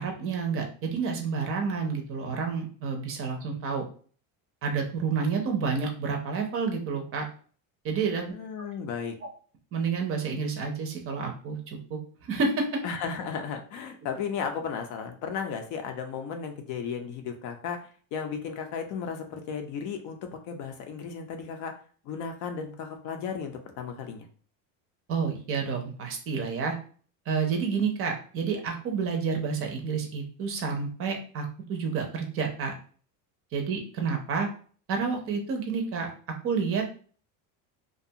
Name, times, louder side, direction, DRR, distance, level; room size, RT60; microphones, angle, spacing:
voice 1, 0.0-3.8 4.6-7.3 7.8-8.7 9.7-12.8 25.1-26.8 27.3-32.7 33.5-34.5 34.9-36.1 36.4-36.8, right 5 dB, 35° right, 3 dB, 0.5 m, -29 dB
voice 2, 8.3-9.2 12.8-21.7 22.0-24.3, left 6 dB, 50° left, 5 dB, 0.5 m, -35 dB
2.5 x 2.2 x 2.7 m, 0.43 s
cardioid pair, 145°, 38 cm